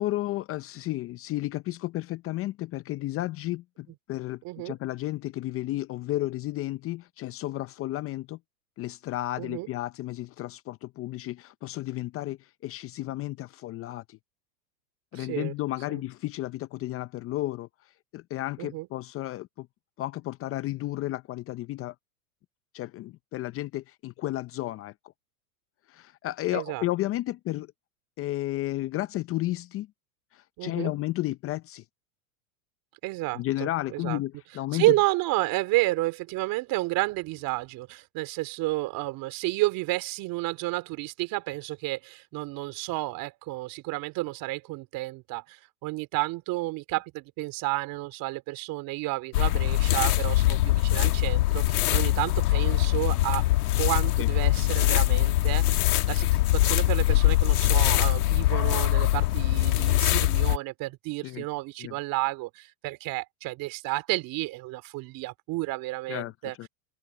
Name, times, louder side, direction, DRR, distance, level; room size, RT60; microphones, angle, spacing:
voice 1, 0.0-8.4 8.8-14.2 15.1-17.7 18.1-19.7 20.0-21.9 22.7-24.9 25.9-27.7 28.2-29.9 30.3-31.8 33.3-35.0 54.2-54.3 61.2-61.4 61.8-61.9 66.1-66.7, left 16 dB, 30° left, 0.6 m, -32 dB
voice 2, 4.4-4.8 9.4-9.7 15.1-15.5 15.9-16.0 18.6-18.9 26.5-26.9 30.6-30.9 33.0-34.2 34.7-53.5 53.8-66.6, right 20 dB, 50° right, 3.5 m, -31 dB
sound 1, 49.3-60.6, left 17 dB, 75° left, 1.6 m, -23 dB
open air
hypercardioid pair, 115°, 45 cm